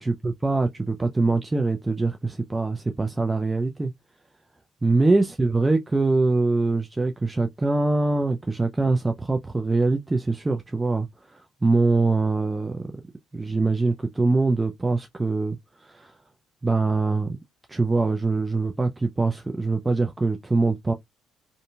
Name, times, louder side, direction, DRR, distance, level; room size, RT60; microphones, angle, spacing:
voice 1, 0.0-3.9 4.8-12.9 13.3-16.1 16.6-17.4 17.7-20.9, right 3 dB, 20° right, 0.4 m, -23 dB
2.6 x 2.5 x 2.3 m
hypercardioid pair, 45°, 0 cm